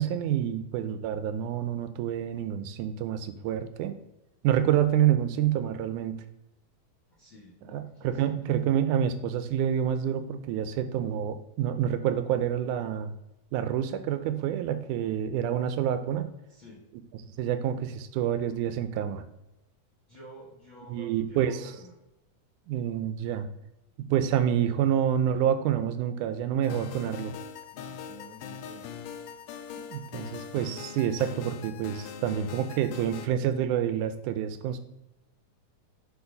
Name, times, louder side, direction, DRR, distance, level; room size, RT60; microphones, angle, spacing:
voice 1, 0.0-3.9 4.4-6.2 7.7-13.1 13.5-16.3 17.4-19.3 20.9-21.6 22.7-23.5 24.0-27.3 29.9-34.8, right 10 dB, 80° right, 9 dB, 2.0 m, -28 dB
voice 2, 7.1-8.4 16.5-16.8 20.1-21.9 27.7-28.9, equal, 45° left, -4 dB, 1.9 m, -50 dB
sound 1, 26.6-33.3, left 7 dB, 80° left, 1.6 m, -41 dB
7.1 x 4.4 x 5.3 m, 0.93 s
omnidirectional pair, 3.8 m